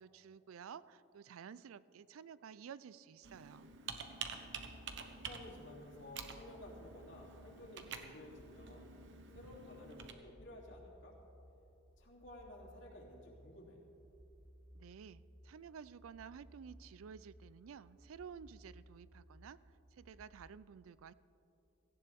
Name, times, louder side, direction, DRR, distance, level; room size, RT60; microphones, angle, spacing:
voice 1, 0.0-3.7 14.7-21.1, right 7 dB, 80° right, 18 dB, 0.4 m, -53 dB
Computer keyboard, 3.2-10.1, right 6 dB, 60° right, 1.0 m, -49 dB
sound 1, 4.5-20.5, equal, 15° right, 1.4 m, -61 dB
voice 2, 5.2-9.0 9.3-11.1 12.0-13.8, left 1 dB, 60° left, -3 dB, 2.9 m, -54 dB
17.5 x 15.5 x 3.5 m, 2.9 s
head